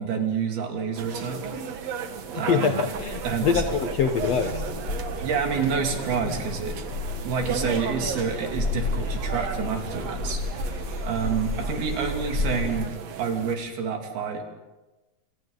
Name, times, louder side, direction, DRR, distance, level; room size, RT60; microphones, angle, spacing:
voice 1, 0.0-1.4 2.4-2.8 3.2-3.6 5.2-6.7 7.2-10.4 11.1-12.9 13.2-14.4, right 6 dB, 75° right, 2 dB, 4.6 m, -28 dB
sound 1, 1.0-13.6, right 6 dB, 55° right, 2.0 m, -35 dB
voice 2, 2.5-4.6, left 6 dB, 65° left, 5 dB, 1.6 m, -24 dB
sound 2, 2.9-12.8, left 3 dB, 25° left, 5.5 m, -32 dB
28.5 x 26.0 x 4.0 m, 1.1 s
omnidirectional pair, 4.5 m